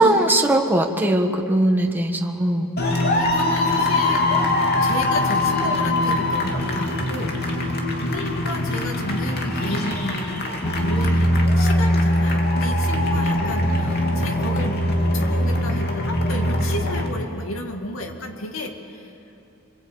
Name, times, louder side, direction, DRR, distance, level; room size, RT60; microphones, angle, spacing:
voice 1, 0.0-2.7, right 1 dB, 10° right, 2 dB, 1.5 m, -19 dB
sound 1, 2.8-17.1, left 1 dB, 50° left, 2.9 m, -22 dB
voice 2, 3.1-4.3 4.8-7.4 8.0-14.8 15.1-19.1, left 1 dB, 70° left, 3 dB, 2.4 m, -33 dB
26.5 x 22.5 x 8.7 m, 2.7 s
head